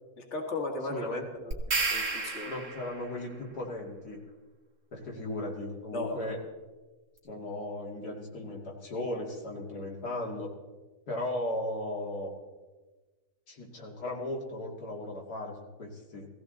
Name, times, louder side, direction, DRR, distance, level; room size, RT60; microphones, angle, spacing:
voice 1, 0.2-1.2 1.4-1.5 1.9-2.5 5.9-6.3, left 2 dB, 45° left, 1 dB, 2.0 m, -36 dB
voice 2, 0.9-1.2 2.5-4.2 4.9-6.4 7.2-10.5 11.1-12.3 13.5-16.3, left 1 dB, 80° left, -1 dB, 2.8 m, -36 dB
sound 1, 1.5-3.1, right 3 dB, 50° right, 2.0 m, -31 dB
18.0 x 15.5 x 3.9 m, 1.3 s
omnidirectional pair, 1.7 m